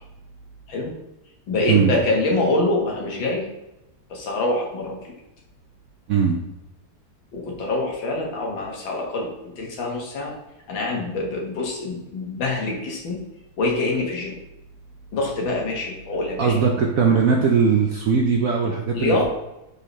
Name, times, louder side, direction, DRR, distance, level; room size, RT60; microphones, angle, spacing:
voice 1, 1.5-3.4 4.1-5.1 7.3-10.3 10.7-13.2 13.6-14.3 15.1-16.6 18.9-19.2, left 2 dB, 90° left, -1 dB, 2.2 m, -25 dB
voice 2, 6.1-6.4 16.4-19.2, right 6 dB, 60° right, 2 dB, 0.9 m, -19 dB
6.7 x 5.5 x 3.2 m, 0.93 s
omnidirectional pair, 2.0 m